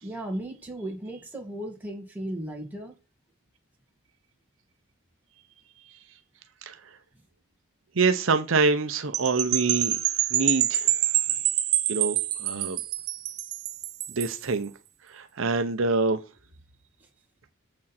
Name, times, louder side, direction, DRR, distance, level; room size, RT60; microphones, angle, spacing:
voice 1, 0.0-3.0, right 1 dB, 10° right, 2.0 m, -35 dB
voice 2, 8.0-10.0 10.3-10.9 11.9-12.8 14.1-14.7 15.1-16.2, right 4 dB, 65° right, 0.7 m, -25 dB
sound 1, 9.1-14.4, right 13 dB, 90° right, 1.0 m, -26 dB
7.5 x 6.2 x 4.3 m
head